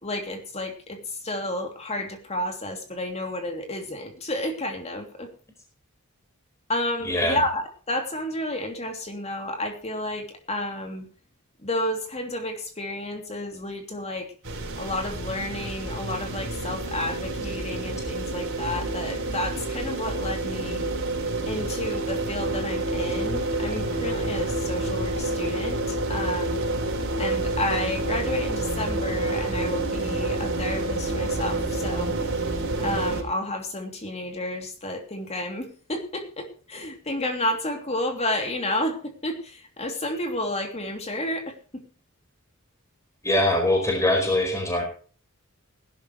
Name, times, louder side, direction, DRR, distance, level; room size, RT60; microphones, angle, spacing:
voice 1, 0.0-5.3 6.7-11.1 11.6-14.3 14.7-20.9 21.5-26.6 27.2-32.4 32.8-41.8, left 1 dB, 30° left, 4 dB, 2.8 m, -31 dB
voice 2, 7.0-7.4 43.2-44.8, left 1 dB, 15° left, 2 dB, 4.5 m, -22 dB
sound 1, 14.4-33.2, right 2 dB, 60° right, 4.6 m, -28 dB
19.5 x 12.0 x 3.1 m, 0.40 s
head